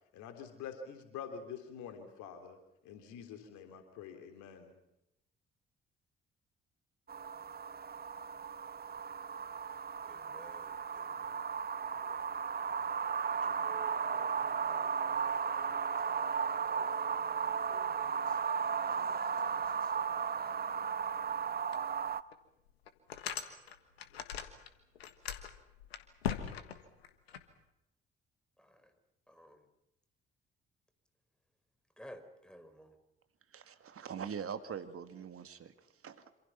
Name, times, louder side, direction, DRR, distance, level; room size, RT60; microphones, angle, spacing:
voice 1, 0.1-2.6 2.8-4.8, left 7 dB, 70° left, 6 dB, 3.4 m, -46 dB
sound 1, 7.1-22.2, right 6 dB, 30° right, 1.0 m, -35 dB
voice 2, 10.0-11.5 11.8-16.4 16.7-17.3 17.6-18.4 18.9-20.6 28.6-28.9 29.3-29.7 32.0-33.0, equal, 5° left, 8 dB, 4.9 m, -57 dB
sound 2, 21.7-21.8 22.3-22.4 22.9-24.7 24.9-27.4, left 8 dB, 85° left, 1.5 m, -40 dB
voice 3, 33.5-36.3, right 7 dB, 50° right, 10 dB, 2.1 m, -43 dB
27.0 x 26.5 x 5.8 m, 0.88 s
figure-of-eight pair, 40°, 30 cm